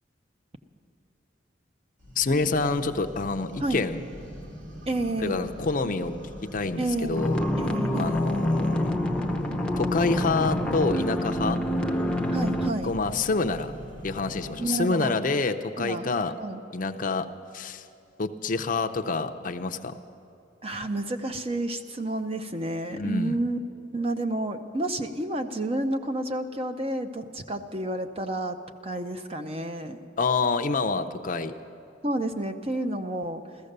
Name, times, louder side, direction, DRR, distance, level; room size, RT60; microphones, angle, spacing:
sound 1, 2.0-14.7, equal, 70° right, 3.2 m, -42 dB
voice 1, 2.2-4.0 5.2-6.1 6.4-7.4 7.9-9.0 9.8-11.6 12.8-13.7 14.0-16.3 16.7-17.3 17.5-17.8 18.2-20.0 22.9-23.4 30.2-31.5, left 3 dB, 45° left, 7 dB, 0.6 m, -27 dB
voice 2, 4.9-5.5 6.8-7.3 7.6-8.2 12.3-12.9 14.6-15.2 15.8-16.1 16.4-16.6 20.6-23.6 23.9-28.6 28.8-30.0 32.0-33.4, right 1 dB, 30° right, 7 dB, 0.7 m, -30 dB
sound 2, 7.1-12.7, left 1 dB, 5° left, 0.7 m, -26 dB
15.5 x 14.5 x 6.7 m, 2.8 s
head